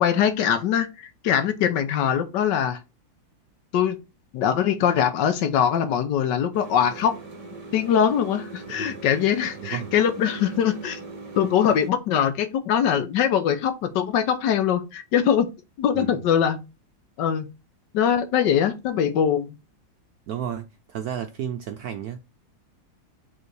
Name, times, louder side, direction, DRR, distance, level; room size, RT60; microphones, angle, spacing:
voice 1, 0.0-2.8 3.7-4.0 4.3-7.1 7.7-11.0 11.4-15.5 15.8-16.6 17.2-17.5 17.9-19.5, left 8 dB, 70° left, 1.3 m, -22 dB
sound 1, 6.5-11.9, right 3 dB, 25° right, 0.9 m, -40 dB
voice 2, 8.7-9.0 9.6-9.9 15.9-16.2 20.3-22.2, right 9 dB, 75° right, 0.9 m, -33 dB
5.4 x 3.8 x 4.5 m
omnidirectional pair, 2.1 m